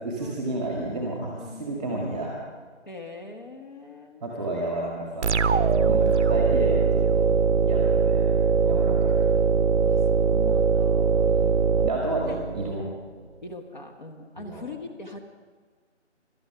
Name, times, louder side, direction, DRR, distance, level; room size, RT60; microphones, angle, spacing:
voice 1, 0.0-1.3 1.6-2.3 4.2-5.4 5.9-7.2 7.6-8.3 8.7-9.1 11.2-12.9 14.4-14.7, right 2 dB, 5° right, -2 dB, 1.3 m, -31 dB
voice 2, 1.4-1.8 2.9-4.5 5.7-6.4 8.6-9.3 9.8-11.3 11.8-12.0 12.3-12.8 13.4-15.2, left 2 dB, 40° left, 3 dB, 1.2 m, -42 dB
sound 1, 5.2-12.7, right 5 dB, 70° right, 0.6 m, -21 dB
14.5 x 12.5 x 5.8 m, 1.5 s
figure-of-eight pair, 170°, 36 cm